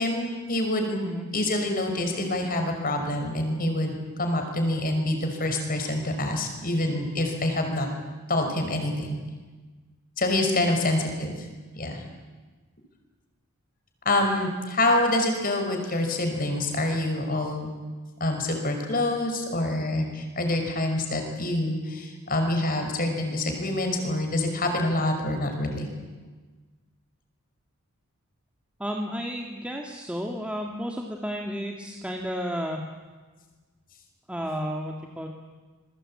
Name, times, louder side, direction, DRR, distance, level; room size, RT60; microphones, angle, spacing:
voice 1, 0.0-1.0 1.3-7.9 8.3-9.2 10.2-11.3 11.8-12.0 14.1-17.7 18.2-25.9, left 1 dB, 40° left, 4 dB, 5.3 m, -26 dB
voice 2, 28.8-32.8 34.3-35.3, equal, 5° right, 1 dB, 1.8 m, -32 dB
27.0 x 22.0 x 8.8 m, 1.3 s
head